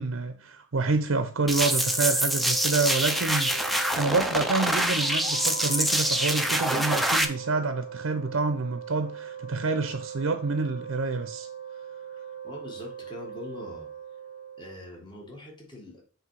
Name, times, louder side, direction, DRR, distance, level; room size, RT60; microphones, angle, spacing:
voice 1, 0.0-11.5, right 3 dB, 75° right, 0.6 m, -28 dB
sound 1, 1.5-7.2, right 1 dB, ahead, 0.4 m, -25 dB
Wind instrument woodwind instrument, 1.6-15.0, right 8 dB, 55° left, 2.4 m, -41 dB
sound 2, 4.3-8.1, left 2 dB, 85° left, 2.0 m, -42 dB
voice 2, 12.4-13.9 14.6-16.0, left 2 dB, 20° left, 1.6 m, -42 dB
7.6 x 3.2 x 4.7 m
head